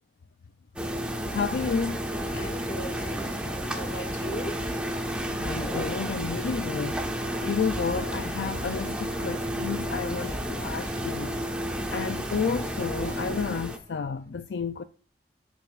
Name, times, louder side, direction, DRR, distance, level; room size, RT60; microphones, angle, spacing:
sound 1, 0.8-13.8, equal, 5° right, 1.2 m, -32 dB
voice 1, 1.3-2.0 5.4-7.0 7.4-11.4 11.9-14.8, left 5 dB, 85° left, 0.4 m, -31 dB
sound 2, 1.6-14.0, right 1 dB, 85° right, 2.0 m, -45 dB
voice 2, 2.3-4.6, equal, 50° left, 2.1 m, -38 dB
15.0 x 8.0 x 2.5 m
head